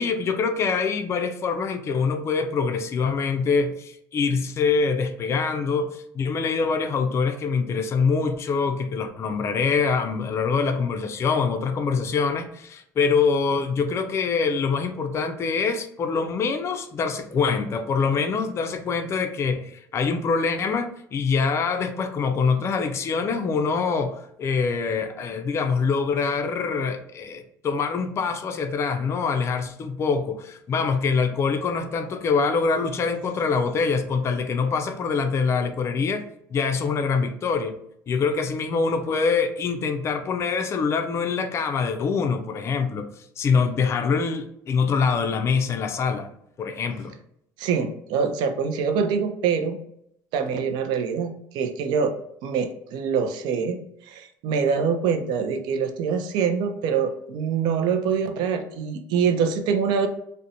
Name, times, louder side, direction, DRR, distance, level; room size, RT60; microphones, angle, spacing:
voice 1, 0.0-36.2 36.5-37.8 38.1-43.1 43.4-46.3 46.6-47.2, left 5 dB, 35° left, 6 dB, 0.3 m, -24 dB
voice 2, 47.6-49.8 50.3-52.1 52.4-53.8 54.1-60.1, right 6 dB, 65° right, 8 dB, 0.4 m, -24 dB
2.5 x 2.1 x 2.8 m, 0.73 s
supercardioid pair, 100°, 8 cm